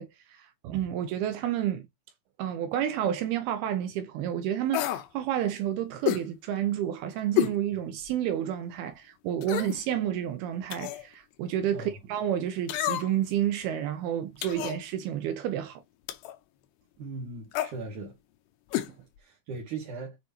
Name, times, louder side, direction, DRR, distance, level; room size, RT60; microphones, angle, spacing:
voice 1, 0.0-1.9 2.4-15.8, right 10 dB, 80° right, 2.3 m, -30 dB
sound 1, 4.7-5.1 6.1-6.3 7.4-7.6 8.1-8.2 9.4-9.8 10.7-11.1 12.7-13.3 14.4-14.8 16.1-16.4 17.5-17.7 18.7-18.9 19.2-19.3, left 14 dB, 80° left, 2.7 m, -29 dB
voice 2, 17.0-18.2 19.2-20.2, right 3 dB, 60° right, 2.4 m, -38 dB
7.7 x 4.9 x 2.8 m
omnidirectional pair, 5.1 m